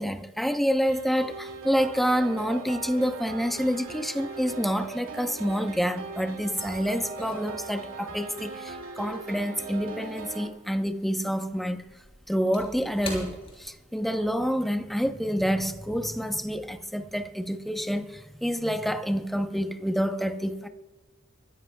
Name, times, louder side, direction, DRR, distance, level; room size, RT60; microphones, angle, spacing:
voice 1, 0.0-11.9 12.3-20.7, equal, ahead, 0.7 m, -28 dB
sound 1, 0.9-10.5, right 4 dB, 80° right, 2.4 m, -39 dB
sound 2, 6.4-10.8 11.1-14.4 14.7-14.9 15.4-15.6, left 2 dB, 30° left, 5.2 m, -45 dB
25.0 x 15.0 x 2.3 m
head